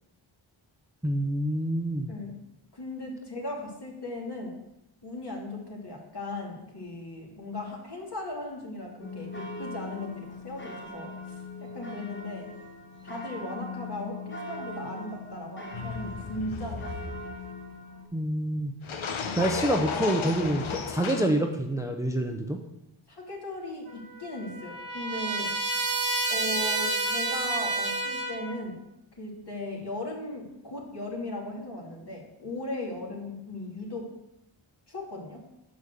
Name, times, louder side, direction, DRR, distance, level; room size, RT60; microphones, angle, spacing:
voice 1, 1.0-2.1 18.1-18.7 19.4-22.6, right 1 dB, 5° right, 4 dB, 0.7 m, -27 dB
voice 2, 2.7-4.5 5.0-11.1 11.6-12.5 13.0-17.2 23.1-25.5 26.3-28.8 29.2-34.1 34.9-35.4, left 2 dB, 50° left, -1 dB, 2.5 m, -37 dB
sound 1, 9.0-18.1, left 2 dB, 25° left, 1.4 m, -40 dB
sound 2, 15.7-17.5 18.8-21.3, left 5 dB, 70° left, 0.9 m, -34 dB
Trumpet, 23.9-28.6, right 3 dB, 70° right, 1.3 m, -30 dB
6.4 x 5.5 x 6.5 m, 0.91 s
cardioid pair, 50°, 50 cm